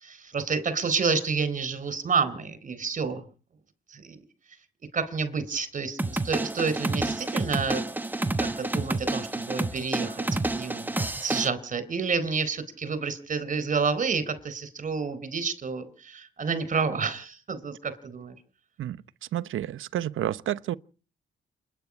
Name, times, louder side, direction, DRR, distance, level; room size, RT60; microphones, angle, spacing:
voice 1, 0.0-3.2 3.9-4.2 4.9-7.8 8.4-10.9 11.2-18.3, right 5 dB, 40° right, 4.0 m, -29 dB
sound 1, 6.0-11.5, right 2 dB, 10° right, 1.1 m, -29 dB
voice 2, 19.3-20.8, right 12 dB, 85° right, 0.9 m, -30 dB
28.0 x 9.5 x 9.8 m
wide cardioid pair, 145°, 20 cm